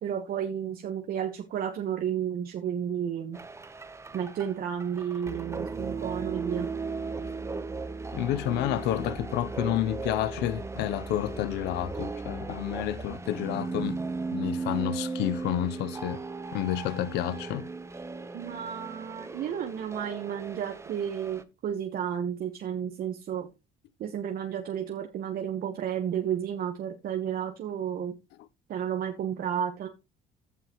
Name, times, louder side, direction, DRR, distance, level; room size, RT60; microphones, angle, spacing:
voice 1, 0.0-3.4 4.1-6.7 18.3-23.5 24.0-28.2 28.7-29.9, right 9 dB, 60° right, 1.2 m, -32 dB
sound 1, 3.3-21.4, right 4 dB, 15° right, 0.9 m, -36 dB
voice 2, 8.1-14.0 14.3-16.2 16.5-17.7, left 13 dB, 85° left, 0.7 m, -30 dB
14.5 x 5.7 x 3.0 m
cardioid pair, 110°, 17 cm